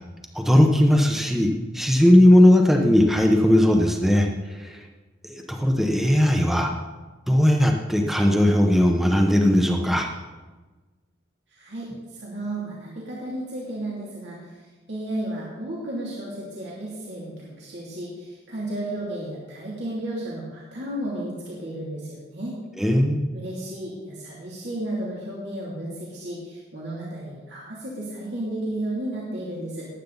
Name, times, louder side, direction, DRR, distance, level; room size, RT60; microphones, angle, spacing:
voice 1, 0.3-1.5 1.7-4.3 4.5-4.8 5.2-6.7 7.3-10.1 22.8-23.2, left 1 dB, ahead, 2 dB, 1.1 m, -18 dB
voice 2, 11.5-14.6 14.9-22.6 23.3-29.8, right 1 dB, 60° right, -6 dB, 2.8 m, -33 dB
19.5 x 8.6 x 4.0 m, 1.3 s
head